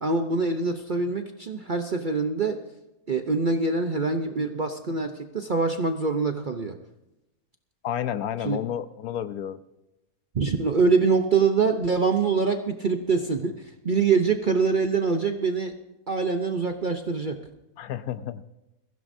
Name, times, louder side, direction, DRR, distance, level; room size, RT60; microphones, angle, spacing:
voice 1, 0.0-2.6 3.1-6.8 8.4-8.6 10.3-15.7 16.1-17.4, right 4 dB, 45° right, 6 dB, 0.6 m, -24 dB
voice 2, 7.8-9.6 17.8-18.4, left 10 dB, 70° left, 13 dB, 1.1 m, -31 dB
21.5 x 15.5 x 2.7 m, 0.95 s
omnidirectional pair, 1.7 m